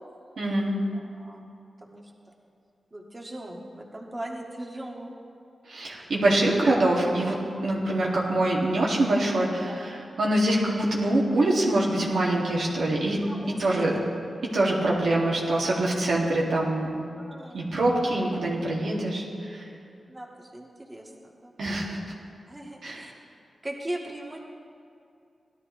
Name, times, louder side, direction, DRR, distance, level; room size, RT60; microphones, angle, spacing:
voice 1, 0.4-0.7 5.7-13.2 13.6-13.9 14.5-17.0 17.5-19.6 21.6-22.0 22.8-23.0, right 1 dB, 85° right, -4 dB, 2.2 m, -24 dB
voice 2, 1.1-1.4 1.8-2.1 2.9-5.1 9.7-9.9 13.2-14.1 17.2-17.8 20.1-21.5 22.5-23.1 23.6-24.4, right 1 dB, 20° right, -1 dB, 1.8 m, -39 dB
17.0 x 12.5 x 3.2 m, 2.5 s
wide cardioid pair, 80°, 0 cm